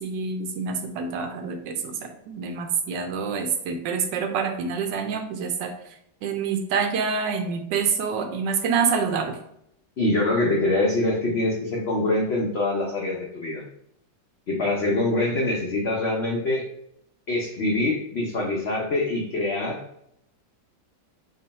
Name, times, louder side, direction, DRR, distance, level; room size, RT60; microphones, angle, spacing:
voice 1, 0.0-5.7 6.2-9.4, right 5 dB, 85° right, 6 dB, 1.3 m, -27 dB
voice 2, 10.0-13.6 14.5-16.6 17.3-19.8, left 2 dB, 75° left, -2 dB, 0.5 m, -24 dB
3.8 x 2.1 x 4.0 m, 0.76 s
omnidirectional pair, 1.9 m